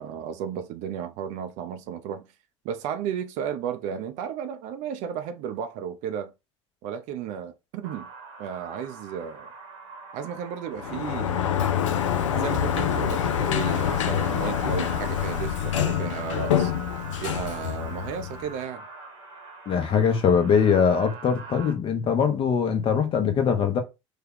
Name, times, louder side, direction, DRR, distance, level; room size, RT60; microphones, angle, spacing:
voice 1, 0.0-2.3 2.6-6.3 6.8-8.1 8.4-9.5 10.1-11.4 12.3-16.7 17.2-18.8, right 8 dB, 50° right, 0.5 m, -33 dB
sound 1, 7.8-21.7, right 3 dB, 70° right, 1.0 m, -43 dB
Sliding door, 10.7-18.5, left 9 dB, 75° left, 0.4 m, -26 dB
voice 2, 19.7-23.8, left 6 dB, 35° left, 0.8 m, -22 dB
3.3 x 2.3 x 3.7 m
figure-of-eight pair, 75°, 16 cm